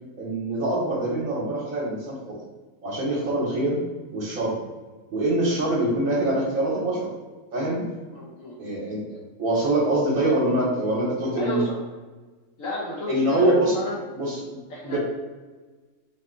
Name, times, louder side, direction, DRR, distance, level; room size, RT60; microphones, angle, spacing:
voice 1, 0.2-2.4 2.8-3.8 4.1-4.6 5.1-7.1 7.5-7.8 8.6-9.0 9.4-11.6 13.1-13.8 14.1-14.6 14.8-15.0, right 1 dB, 80° right, -6 dB, 1.4 m, -24 dB
voice 2, 8.1-8.6 11.4-11.8 12.6-14.0 14.7-15.0, equal, 70° left, -4 dB, 1.3 m, -33 dB
4.5 x 2.6 x 3.7 m, 1.3 s
omnidirectional pair, 1.4 m